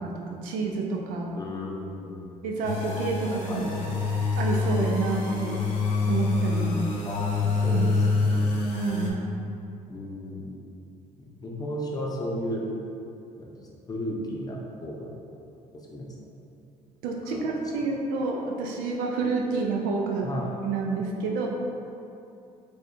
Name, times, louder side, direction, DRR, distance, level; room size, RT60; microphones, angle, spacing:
voice 1, 0.0-1.3 2.4-3.6 4.4-5.6 6.1-6.9 7.7-7.9 8.7-9.3 17.0-20.3 20.6-21.5, right 4 dB, 90° right, 0 dB, 0.5 m, -29 dB
voice 2, 1.3-2.3 3.5-4.2 7.0-8.6 9.9-10.5 11.2-12.6 13.3-13.5 13.9-15.1 15.7-16.1 17.3-17.4 20.2-20.5, equal, 25° left, -2 dB, 0.6 m, -34 dB
sound 1, 2.6-9.1, left 3 dB, 60° left, 0.7 m, -26 dB
4.5 x 2.3 x 2.6 m, 2.6 s
cardioid pair, 90°, 14 cm